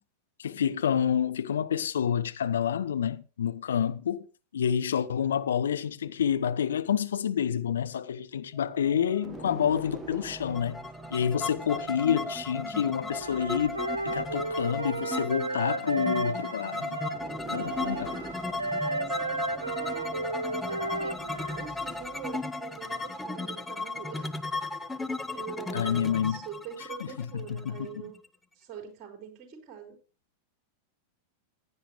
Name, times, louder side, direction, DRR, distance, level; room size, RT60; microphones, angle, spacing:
voice 1, 0.4-4.3 4.5-10.8 11.1-17.0 17.5-18.2 25.7-26.4 27.0-28.0, left 8 dB, 65° left, 0.8 m, -28 dB
sound 1, 8.5-23.3, right 2 dB, 10° right, 1.8 m, -46 dB
sound 2, 10.5-28.3, left 2 dB, 10° left, 0.9 m, -36 dB
Wind instrument woodwind instrument, 13.2-21.7, right 2 dB, 80° right, 0.5 m, -34 dB
voice 2, 18.8-24.3 25.3-28.2 28.6-30.0, right 7 dB, 30° right, 4.6 m, -44 dB
16.0 x 10.0 x 3.2 m
figure-of-eight pair, 90°, 0 cm